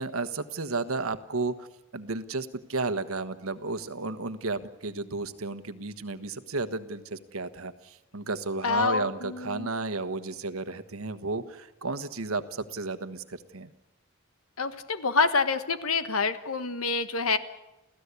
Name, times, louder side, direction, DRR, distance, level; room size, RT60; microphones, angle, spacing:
voice 1, 0.0-1.7 1.9-13.7, right 3 dB, 90° right, 11 dB, 1.3 m, -33 dB
voice 2, 8.6-9.7 14.6-17.4, left 4 dB, 85° left, 10 dB, 1.4 m, -27 dB
29.5 x 15.5 x 8.3 m, 0.99 s
head